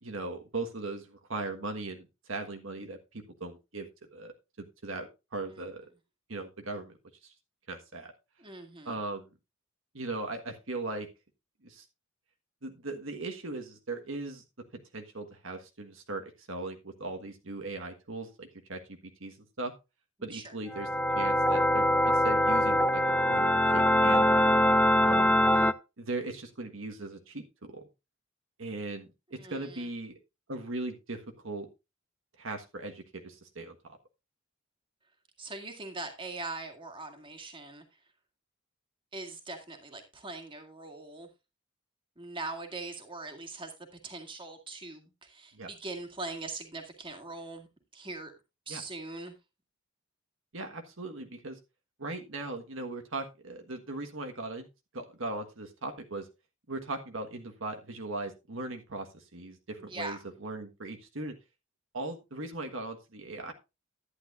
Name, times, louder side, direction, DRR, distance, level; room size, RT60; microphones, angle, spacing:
voice 1, 0.0-5.8 6.3-7.0 7.2-7.3 7.7-8.1 8.8-9.2 9.9-11.1 11.6-11.8 12.6-14.4 14.9-19.7 20.2-20.9 21.1-23.0 23.3-24.5 25.0-25.4 26.0-27.9 28.6-30.2 30.5-31.7 32.4-34.0 45.5-45.7 48.7-48.8 50.5-51.6 52.0-54.7 54.9-56.3 56.7-61.4 61.9-63.5, right 2 dB, 70° right, 1.5 m, -39 dB
voice 2, 8.4-8.9 20.3-20.5 29.4-29.9 35.4-37.8 39.1-41.3 42.2-43.7 44.0-47.7 47.9-48.3 48.7-49.4 59.8-60.2, right 3 dB, 25° right, 2.0 m, -41 dB
sound 1, 20.7-25.7, equal, 5° left, 0.5 m, -23 dB
11.5 x 10.0 x 2.5 m
head